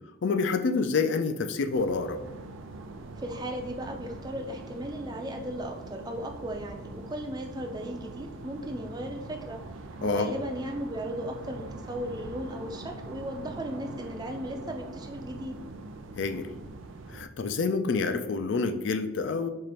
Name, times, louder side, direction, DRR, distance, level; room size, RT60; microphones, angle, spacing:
voice 1, 0.2-2.2 10.0-10.3 16.2-16.5 17.1-19.5, left 4 dB, 65° left, 8 dB, 0.4 m, -27 dB
sound 1, 1.7-17.3, right 3 dB, 80° right, 0.4 m, -43 dB
voice 2, 3.2-9.6 10.0-15.6, equal, 20° right, 4 dB, 0.4 m, -36 dB
4.8 x 2.5 x 4.2 m, 0.99 s
head